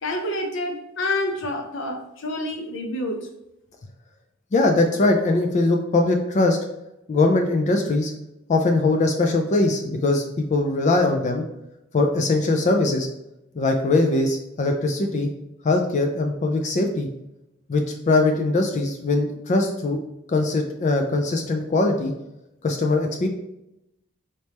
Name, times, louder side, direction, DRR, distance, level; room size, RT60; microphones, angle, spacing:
voice 1, 0.0-3.3, left 1 dB, 65° left, 0.8 m, -28 dB
voice 2, 4.5-6.6 7.1-8.1 8.5-11.4 11.9-13.1 13.5-15.3 15.6-17.1 17.7-20.0 20.3-22.1 22.6-23.3, left 2 dB, 35° left, 0.4 m, -21 dB
4.2 x 3.0 x 3.3 m
head